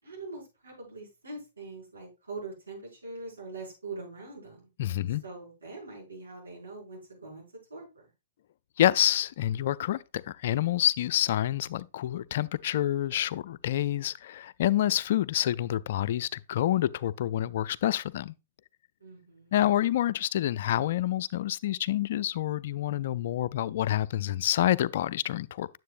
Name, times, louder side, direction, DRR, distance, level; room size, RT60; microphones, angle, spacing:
voice 1, 0.0-4.7 5.2-7.4 7.7-8.1 19.0-19.7, right 3 dB, 80° right, 5.5 m, -43 dB
voice 2, 4.8-5.2 8.8-18.3 19.5-25.7, left 12 dB, 55° left, 0.3 m, -27 dB
9.3 x 7.5 x 2.5 m
figure-of-eight pair, 115°, 0 cm